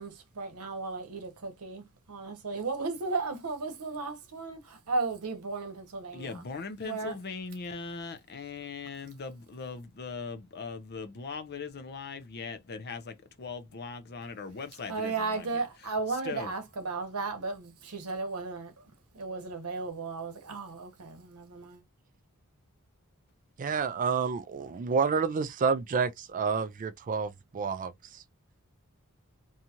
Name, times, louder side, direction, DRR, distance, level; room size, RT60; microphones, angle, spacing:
voice 1, 0.0-6.4 6.8-7.2 14.9-18.7 19.1-21.8, right 3 dB, 85° right, 0.9 m, -35 dB
voice 2, 6.1-15.6 16.3-16.5, left 4 dB, 45° left, 0.6 m, -40 dB
voice 3, 23.6-28.2, right 5 dB, 35° right, 0.3 m, -29 dB
2.7 x 2.4 x 2.8 m
head